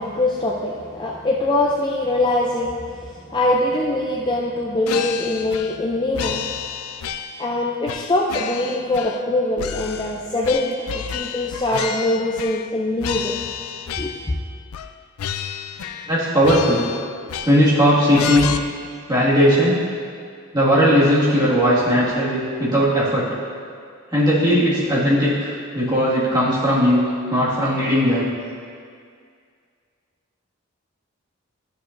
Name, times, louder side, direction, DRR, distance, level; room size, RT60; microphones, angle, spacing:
voice 1, 0.0-6.4 7.4-13.3 14.0-14.1, left 2 dB, 20° left, -3 dB, 0.4 m, -23 dB
sound 1, 4.9-5.9 6.1-7.5 7.9-9.3 9.6-12.7 13.0-14.4 14.7-14.9 15.2-16.2 16.4-17.8 18.1-18.6, left 8 dB, 85° left, 0.4 m, -30 dB
voice 2, 16.1-16.9 17.4-18.5 19.1-19.9 20.5-23.3 24.1-28.3, equal, 20° right, -9 dB, 1.9 m, -18 dB
11.0 x 6.8 x 2.6 m, 2.2 s
head